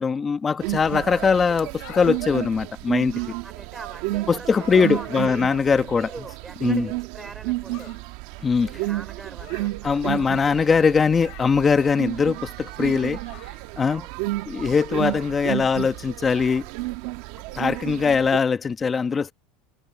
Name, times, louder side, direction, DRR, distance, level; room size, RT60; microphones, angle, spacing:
voice 1, 0.0-3.1 4.3-6.1 6.6-6.9 8.4-8.7 9.8-13.2 13.8-14.0 14.5-16.7 17.6-19.3, left 5 dB, 20° left, 1.2 m, -21 dB
sound 1, 0.6-18.4, right 19 dB, 70° right, 1.3 m, -31 dB
sound 2, 1.6-2.2 4.5-5.1 7.7-8.0 9.4-9.8 11.1-11.6 13.2-13.6, left 24 dB, 60° left, 3.2 m, -44 dB
voice 2, 3.1-5.5 5.9-7.9 8.6-10.5 13.9-14.2, right 3 dB, 15° right, 3.9 m, -42 dB
supercardioid pair, 140°, 0 cm